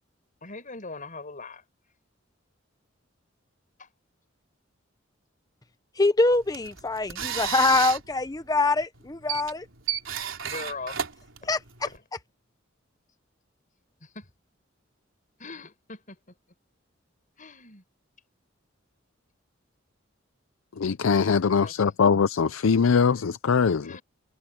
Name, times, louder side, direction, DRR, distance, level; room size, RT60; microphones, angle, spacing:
voice 1, 0.4-1.6 3.8-3.9 10.4-11.0 11.4-11.5 11.8-12.0 14.1-14.3 15.4-16.2 17.4-17.8 21.6-21.9 23.8-24.0, left 3 dB, 40° left, 6.1 m, -40 dB
voice 2, 6.0-9.6 11.5-11.6, left 3 dB, 20° left, 0.7 m, -24 dB
sound 1, 6.3-12.0, right 9 dB, 75° right, 3.5 m, -34 dB
voice 3, 20.8-24.0, left 5 dB, 85° left, 0.5 m, -22 dB
head